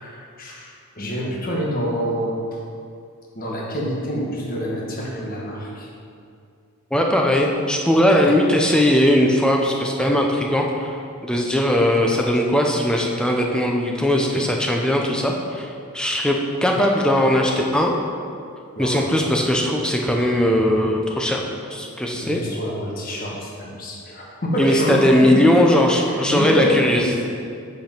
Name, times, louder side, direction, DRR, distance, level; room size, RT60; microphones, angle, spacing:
voice 1, 0.0-2.6 3.3-5.9 18.7-19.2 22.1-25.5 26.0-27.2, equal, 40° left, -3 dB, 1.3 m, -27 dB
voice 2, 6.9-11.0 11.2-17.9 18.8-21.4 21.7-22.4 24.6-27.2, left 1 dB, 5° left, 0 dB, 0.5 m, -19 dB
8.0 x 5.2 x 4.4 m, 2.4 s
head